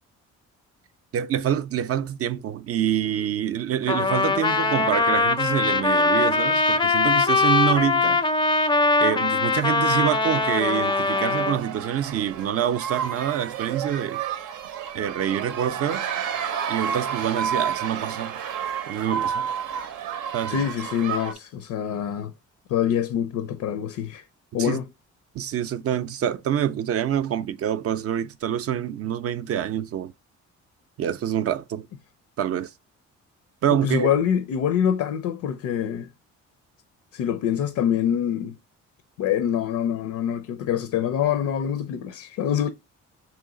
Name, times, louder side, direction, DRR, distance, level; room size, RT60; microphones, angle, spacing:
voice 1, 1.1-8.2 9.0-14.2 14.9-16.1 16.7-18.4 18.9-19.5 20.3-20.6 24.6-24.8 25.3-30.1 31.0-31.9 32.4-32.7 33.6-34.1, right 10 dB, 50° right, 0.4 m, -26 dB
Trumpet, 3.9-11.6, left 3 dB, 15° left, 0.4 m, -21 dB
sound 1, 10.3-21.3, right 8 dB, 90° right, 0.7 m, -31 dB
voice 2, 20.5-22.3 22.7-24.2 24.5-24.9 33.8-36.1 37.1-38.6 39.2-42.7, left 9 dB, 75° left, 0.5 m, -25 dB
3.1 x 3.1 x 3.7 m
cardioid pair, 90°, 30 cm